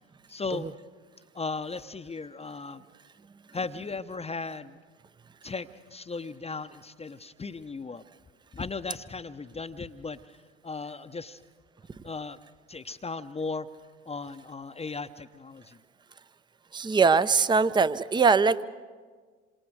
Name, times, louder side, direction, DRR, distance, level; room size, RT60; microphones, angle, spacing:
voice 1, 0.3-0.7 1.3-2.8 3.5-4.8 5.4-8.0 8.5-10.2 10.6-11.4 12.0-12.4 12.7-13.7 14.1-15.8, left 4 dB, 20° left, 9 dB, 0.8 m, -36 dB
voice 2, 16.7-18.6, right 5 dB, 15° right, 16 dB, 0.7 m, -22 dB
27.0 x 26.0 x 4.8 m, 1.5 s
hypercardioid pair, 65°, 34 cm